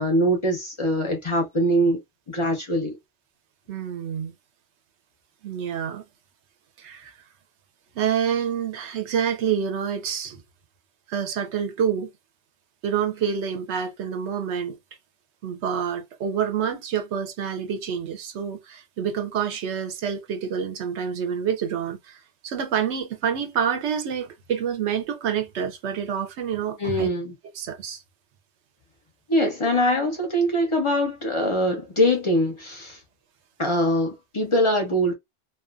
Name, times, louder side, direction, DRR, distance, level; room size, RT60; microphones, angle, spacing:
voice 1, 0.0-2.0 2.3-3.0 26.8-27.3 29.3-33.0 33.6-35.1, equal, 35° left, 0.5 m, -23 dB
voice 2, 3.7-4.3 5.4-6.0 6.8-7.1 8.0-10.4 11.1-12.1 12.8-14.8 15.4-22.2 22.4-27.1 27.6-28.0, right 8 dB, 70° right, 0.8 m, -27 dB
2.4 x 2.2 x 2.4 m
omnidirectional pair, 1.3 m